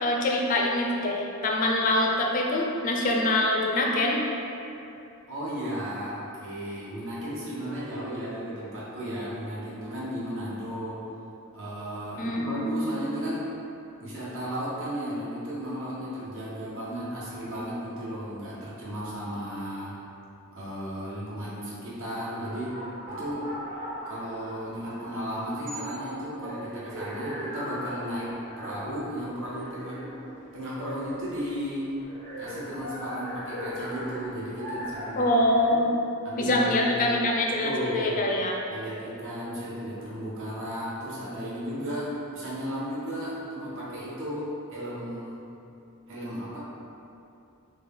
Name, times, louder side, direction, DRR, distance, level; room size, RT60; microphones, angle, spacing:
voice 1, 0.0-4.2 12.2-13.0 35.2-35.9 36.4-38.6, left 1 dB, 35° left, -1 dB, 0.4 m, -25 dB
voice 2, 5.3-11.0 11.5-13.5 14.0-19.9 20.5-22.8 23.1-23.5 24.1-30.0 30.5-31.9 32.4-35.3 35.7-35.8 36.2-37.1 37.6-38.2 38.7-45.4 46.1-46.6, equal, 60° right, -8 dB, 0.9 m, -34 dB
sound 1, 22.4-35.7, equal, 30° right, 1.3 m, -39 dB
3.2 x 2.3 x 3.4 m, 2.8 s
head